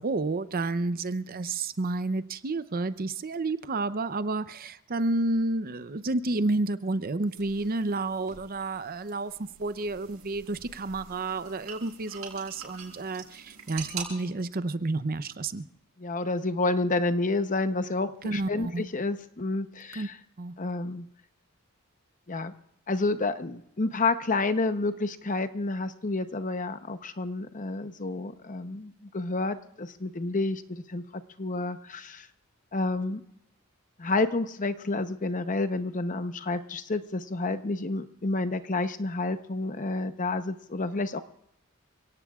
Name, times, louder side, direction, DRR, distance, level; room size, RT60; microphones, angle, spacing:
voice 1, 0.0-15.6 18.2-18.9 20.0-20.1 20.4-20.5, right 2 dB, 45° right, 13 dB, 0.6 m, -30 dB
sound 1, 7.3-14.0, right 7 dB, 90° right, 6.9 m, -45 dB
voice 2, 16.0-20.2 20.6-21.1 22.3-22.5 22.9-31.0 31.4-32.3 32.7-33.2 34.0-41.2, left 3 dB, 40° left, 10 dB, 0.8 m, -29 dB
29.5 x 17.5 x 2.4 m, 0.76 s
head